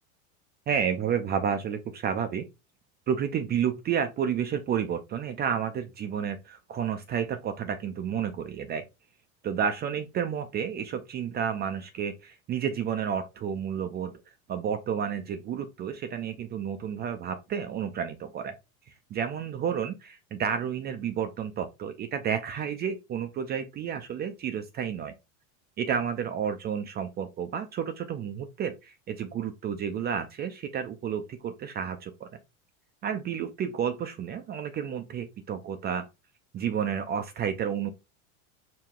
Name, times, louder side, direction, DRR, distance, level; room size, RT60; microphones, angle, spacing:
voice 1, 0.7-2.4 3.1-8.8 9.4-18.5 18.9-25.1 25.8-32.3 33.0-36.1 36.5-37.9, right 8 dB, 25° right, 0.4 m, -31 dB
4.7 x 2.2 x 3.6 m
supercardioid pair, 110°, 42 cm